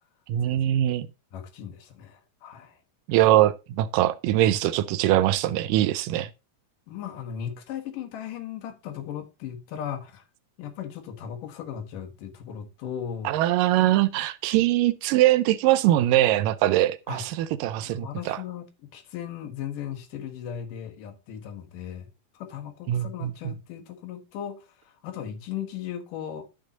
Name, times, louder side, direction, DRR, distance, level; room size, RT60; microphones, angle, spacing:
voice 1, 0.3-1.1 3.1-6.3 13.3-18.4 22.9-23.5, right 14 dB, 80° right, 2.2 m, -22 dB
voice 2, 1.3-2.8 6.9-10.2 10.6-13.4 17.1-17.3 17.8-22.1 22.3-26.4, left 9 dB, 75° left, 2.8 m, -37 dB
11.5 x 5.3 x 3.9 m
omnidirectional pair, 3.9 m